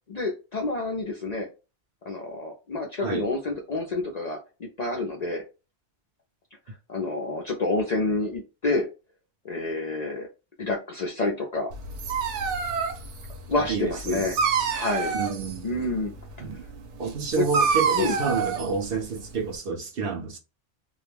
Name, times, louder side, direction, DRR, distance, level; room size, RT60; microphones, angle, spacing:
voice 1, 0.1-1.5 2.0-5.4 6.9-8.9 9.4-10.3 10.6-11.7 13.5-14.4 14.7-15.2 15.6-16.1 17.9-18.2, left 2 dB, 55° left, 0.5 m, -28 dB
Dog, 11.7-19.5, right 6 dB, 90° right, 0.9 m, -28 dB
voice 2, 13.6-14.3 15.1-15.7 16.4-16.6 17.0-20.4, right 5 dB, 60° right, 0.8 m, -29 dB
2.3 x 2.1 x 3.2 m
omnidirectional pair, 1.2 m